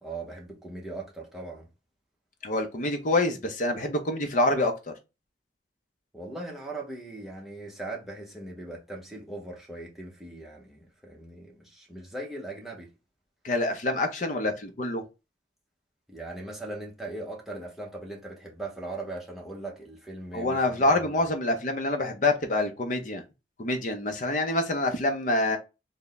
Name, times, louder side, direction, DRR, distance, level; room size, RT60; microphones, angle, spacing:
voice 1, 0.0-1.7 6.1-12.9 16.1-21.2, right 2 dB, ahead, 0.8 m, -39 dB
voice 2, 2.4-4.7 13.4-15.0 20.3-23.2 23.6-25.6, left 2 dB, 45° left, 0.6 m, -26 dB
3.4 x 2.1 x 4.0 m
head